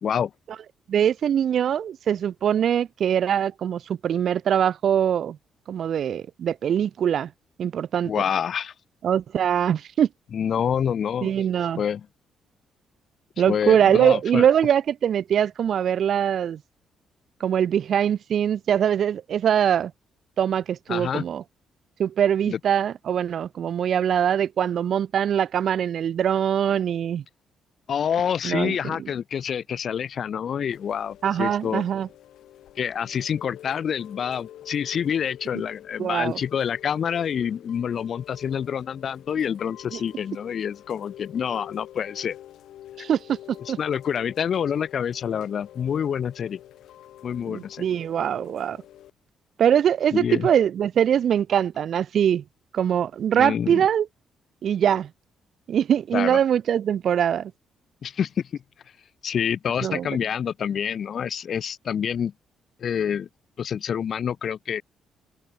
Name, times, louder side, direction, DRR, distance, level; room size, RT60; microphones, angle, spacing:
voice 1, 0.0-0.3 8.0-8.7 10.3-11.3 11.8-12.1 13.5-14.5 20.9-21.2 22.5-22.6 27.9-31.9 32.8-42.4 43.6-46.6 47.2-47.8 50.1-50.5 53.4-53.8 56.1-56.4 58.0-58.6 59.2-62.3 62.8-63.3 63.6-64.8, left 8 dB, 55° left, 1.2 m, -27 dB
voice 2, 0.9-5.4 5.7-7.3 7.6-8.1 9.0-10.1 11.2-11.8 13.4-16.6 17.4-19.9 20.4-21.4 22.0-27.2 28.4-29.0 31.2-32.1 36.0-36.4 39.9-40.0 43.0-43.8 47.5-48.8 49.6-52.4 52.7-54.1 54.6-55.1 55.7-57.5 59.8-60.1, right 9 dB, 60° right, 0.6 m, -22 dB
Chime / Rain, 30.7-49.1, left 12 dB, 80° left, 5.0 m, -47 dB
open air
cardioid pair, 90°, 0 cm